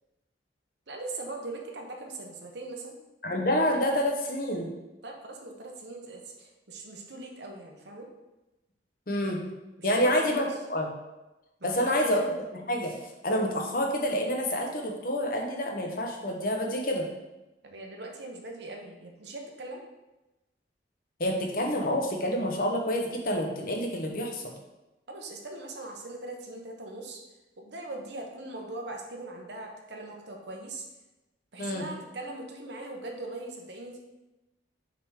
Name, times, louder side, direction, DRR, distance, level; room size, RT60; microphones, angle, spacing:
voice 1, 0.9-3.0 5.0-8.1 9.8-10.6 11.6-12.4 17.6-19.8 25.1-27.2 27.6-30.9 31.5-34.0, right 2 dB, 65° right, 1 dB, 0.9 m, -41 dB
voice 2, 3.2-4.7 9.1-9.4 9.8-10.9 11.6-12.2 12.5-12.9 13.2-17.1 21.2-24.5 31.6-31.8, equal, 50° left, 1 dB, 1.0 m, -28 dB
5.9 x 3.7 x 4.8 m, 1.0 s
head